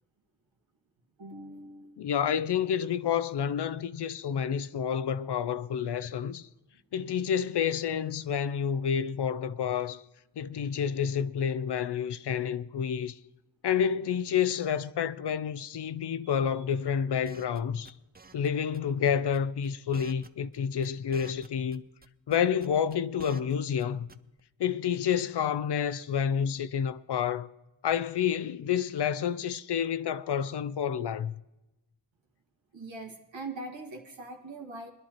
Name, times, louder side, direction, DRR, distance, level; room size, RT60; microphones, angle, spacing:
voice 1, 1.2-2.1 16.2-16.3 32.7-34.9, right 2 dB, 90° right, 1.8 m, -42 dB
voice 2, 2.0-6.5 6.9-10.0 10.4-13.2 13.6-17.9 18.3-21.8 22.3-24.1 24.6-27.5 27.8-31.3, left 8 dB, 65° left, 0.6 m, -29 dB
sound 1, 17.2-17.6 17.8-18.5 18.7-18.8 19.0-19.7 19.9-20.6 20.8-21.8 22.0-23.5 23.8-23.9 24.1-24.4, right 4 dB, 20° right, 0.5 m, -50 dB
21.5 x 11.0 x 3.0 m
cardioid pair, 55°, 44 cm